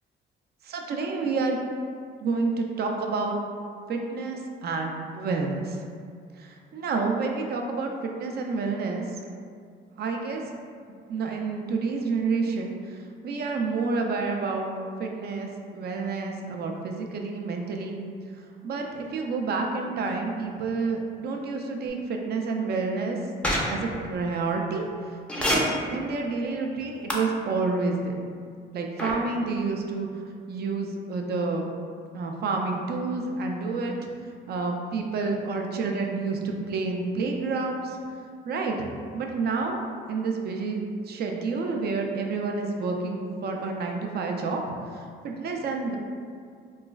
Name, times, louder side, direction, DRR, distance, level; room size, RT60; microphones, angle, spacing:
voice 1, 0.6-1.6 2.2-3.4 3.9-5.8 6.4-9.0 10.0-10.4 11.1-12.8 13.2-14.7 15.0-18.0 18.6-23.2 23.7-24.9 25.4-28.1 28.7-30.1 30.5-31.7 32.1-33.9 34.5-38.0 38.4-38.8 39.1-39.8 40.1-40.8 41.1-44.6 44.9-46.0, right 4 dB, 55° right, 2 dB, 0.4 m, -29 dB
sound 1, 23.4-23.6 25.3-25.6 27.1-27.2 29.0-29.1, left 1 dB, 5° left, 0.4 m, -24 dB
3.0 x 2.2 x 2.3 m, 2.2 s
cardioid pair, 90°, 20 cm